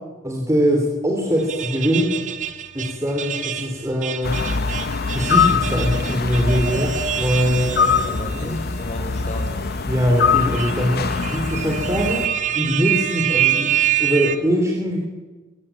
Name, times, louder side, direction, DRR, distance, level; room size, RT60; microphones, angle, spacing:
voice 1, 0.2-2.2 2.7-4.4 5.1-7.7 8.3-8.5 9.9-12.3 12.5-13.7 14.0-15.0, equal, 15° right, 0 dB, 3.4 m, -22 dB
sound 1, 1.4-8.5 8.9-9.0 10.0-14.4, right 10 dB, 40° right, 1.4 m, -26 dB
sound 2, 4.2-12.3, left 5 dB, 50° left, 0.8 m, -23 dB
voice 2, 7.5-9.7, left 1 dB, 35° left, 2 dB, 6.1 m, -33 dB
22.5 x 17.0 x 8.9 m, 1.2 s
head